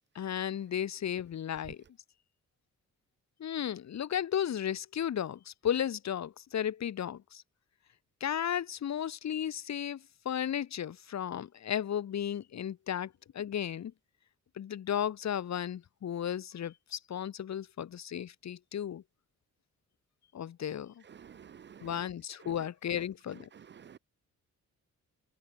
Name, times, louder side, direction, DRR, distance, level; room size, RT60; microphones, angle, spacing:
voice 1, 0.2-1.8 3.4-7.4 8.2-13.9 14.6-19.0 20.3-20.9 21.8-23.5, left 9 dB, 65° left, 2.2 m, -34 dB
voice 2, 21.2-21.9 23.8-24.0, right 8 dB, 40° right, 0.5 m, -51 dB
cardioid pair, 110°, 30 cm